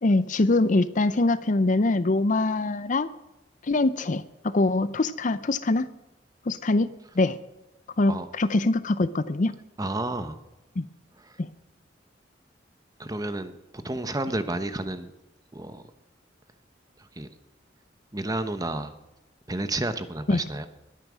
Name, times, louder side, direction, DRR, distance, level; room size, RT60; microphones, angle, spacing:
voice 1, 0.0-3.1 3.7-5.9 6.5-6.9 7.2-7.4 8.0-9.5 10.8-10.9 11.4-11.5 20.3-20.4, left 2 dB, 45° left, 15 dB, 0.6 m, -23 dB
voice 2, 9.8-10.4 11.3-11.4 13.0-13.5 13.8-15.1 15.5-15.8 17.0-17.3 18.1-19.0 19.5-20.7, right 2 dB, 20° right, 10 dB, 1.0 m, -31 dB
21.0 x 8.9 x 6.2 m, 1.0 s
head